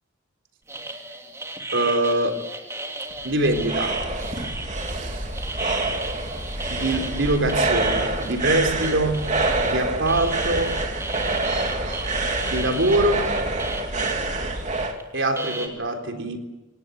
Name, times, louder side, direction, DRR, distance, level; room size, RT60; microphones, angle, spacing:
sound 1, 0.7-9.7 10.1-14.2 15.0-15.1 15.4-15.7, right 2 dB, 15° right, 3.0 m, -34 dB
voice 1, 1.7-2.4 3.2-4.4 4.9-5.2 6.7-9.3 9.6-10.9 12.4-13.3 15.1-16.4, right 1 dB, 70° right, 3.6 m, -24 dB
sound 2, 3.1-15.0, right 2 dB, 35° right, 3.0 m, -27 dB
27.0 x 19.0 x 8.1 m
head